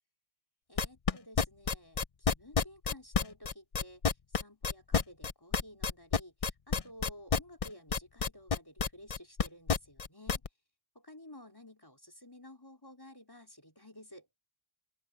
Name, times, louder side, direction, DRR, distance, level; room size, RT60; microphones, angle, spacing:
voice 1, 0.7-10.4 10.9-14.3, left 1 dB, 20° left, 4.6 m, -53 dB
sound 1, 0.8-10.5, left 5 dB, 40° left, 0.7 m, -29 dB
open air
omnidirectional pair, 1.0 m